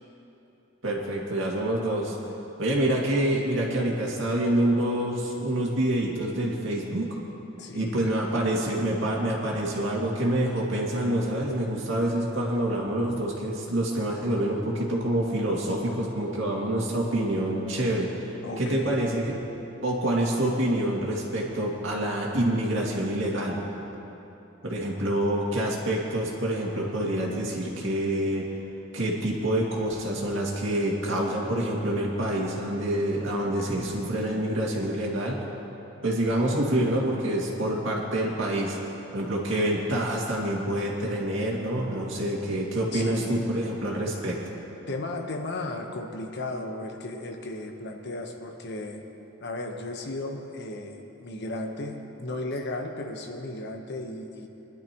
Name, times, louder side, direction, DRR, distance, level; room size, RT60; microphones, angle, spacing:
voice 1, 0.8-2.2 2.6-7.1 7.7-18.3 18.6-19.3 19.8-23.6 24.6-28.5 28.9-35.4 36.0-38.8 39.1-44.5, right 1 dB, 70° right, -3 dB, 2.3 m, -27 dB
voice 2, 7.6-8.1 18.4-19.1 42.9-43.4 44.9-49.0 49.4-54.5, left 2 dB, 60° left, 4 dB, 1.1 m, -35 dB
22.5 x 11.5 x 3.0 m, 3.0 s
head